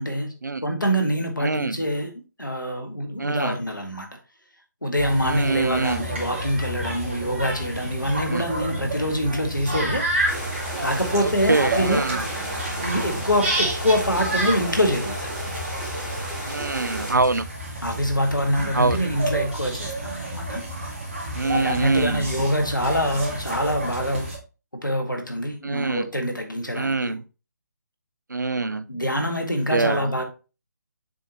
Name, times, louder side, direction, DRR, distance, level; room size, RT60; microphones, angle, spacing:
voice 1, 0.0-0.3 0.6-2.1 2.4-4.1 4.8-10.0 10.8-12.0 12.8-15.3 17.8-20.6 21.5-24.3 24.8-27.1 28.9-30.2, equal, 85° left, 1.7 m, -25 dB
voice 2, 1.4-1.8 3.2-3.6 5.2-6.0 8.3-8.4 11.2-12.3 16.5-17.4 18.7-19.0 21.3-22.3 25.6-26.1 26.7-27.2 28.3-28.8 29.7-30.1, right 3 dB, 70° right, 0.6 m, -24 dB
sound 1, 4.9-24.4, right 1 dB, 35° right, 2.0 m, -30 dB
sound 2, 10.3-17.1, right 1 dB, 10° right, 2.1 m, -33 dB
7.0 x 4.6 x 3.0 m
figure-of-eight pair, 145°, 10 cm